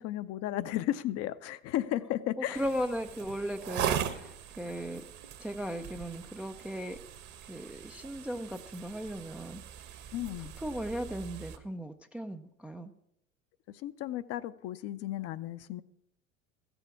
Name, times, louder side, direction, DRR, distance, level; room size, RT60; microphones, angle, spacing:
voice 1, 0.0-2.6 10.1-10.5 13.7-15.8, left 13 dB, 40° left, 0.6 m, -34 dB
voice 2, 2.4-5.0 5.4-7.0 7.5-9.6 10.4-12.9, equal, 5° right, 0.4 m, -37 dB
sound 1, 2.5-11.6, right 9 dB, 45° right, 1.2 m, -40 dB
15.0 x 7.0 x 5.8 m
figure-of-eight pair, 75°, 39 cm